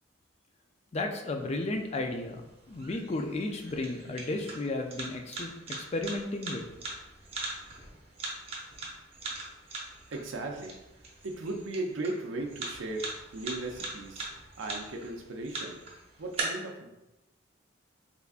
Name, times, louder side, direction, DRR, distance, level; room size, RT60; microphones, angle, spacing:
voice 1, 0.9-2.4 2.7-6.6, left 2 dB, 30° left, 4 dB, 0.3 m, -33 dB
sound 1, 1.4-16.4, right 3 dB, 30° right, 0.7 m, -42 dB
voice 2, 10.1-10.8 11.2-15.8 16.2-16.9, right 2 dB, 80° right, 2 dB, 0.5 m, -37 dB
3.5 x 3.3 x 2.4 m, 0.98 s
head